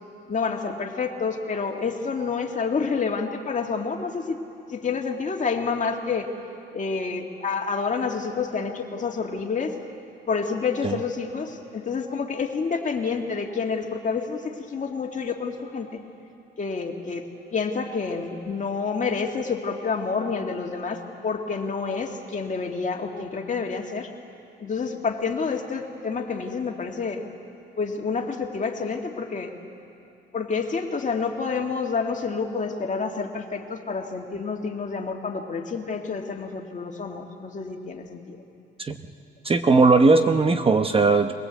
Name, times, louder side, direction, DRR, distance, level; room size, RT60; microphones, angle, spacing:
voice 1, 0.3-4.4 4.7-6.3 6.7-9.7 10.3-16.0 16.6-24.1 24.6-27.3 27.8-29.5 30.3-38.4, left 5 dB, 40° left, 2 dB, 2.1 m, -28 dB
voice 2, 39.4-41.3, right 3 dB, 30° right, 7 dB, 0.9 m, -18 dB
23.0 x 18.0 x 8.2 m, 2.7 s
cardioid pair, 90°, 20 cm